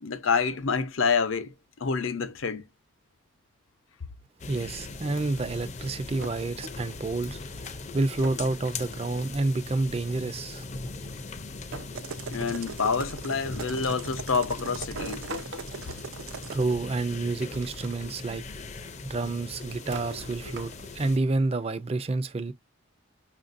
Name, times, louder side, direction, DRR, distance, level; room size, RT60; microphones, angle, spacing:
voice 1, 0.0-2.6 12.3-15.2, left 5 dB, 75° left, 0.6 m, -27 dB
sound 1, 4.4-21.2, left 3 dB, 35° left, 0.5 m, -40 dB
voice 2, 4.5-10.7 16.5-18.4 19.1-22.5, right 2 dB, 30° right, 0.4 m, -29 dB
sound 2, 6.2-7.2 8.2-8.6 8.8-9.5 10.5-10.6 11.7-13.0 15.0-16.8 17.5-17.9 18.3-18.4 19.6-21.0, right 1 dB, 65° right, 0.9 m, -42 dB
sound 3, 11.9-16.8, right 6 dB, 85° right, 0.5 m, -40 dB
5.8 x 2.5 x 2.5 m
head